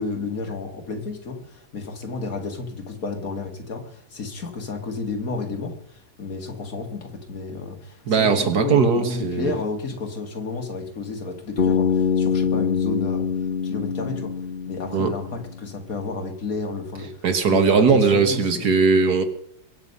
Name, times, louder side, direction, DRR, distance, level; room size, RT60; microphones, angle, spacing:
voice 1, 0.0-13.3 13.6-14.4 14.7-18.9, left 4 dB, 60° left, 2.4 m, -31 dB
voice 2, 8.1-9.5 14.9-15.1 17.2-19.2, right 5 dB, 75° right, 2.1 m, -19 dB
Bass guitar, 11.6-15.6, left 6 dB, 40° left, 1.5 m, -24 dB
22.5 x 8.0 x 5.5 m
omnidirectional pair, 1.7 m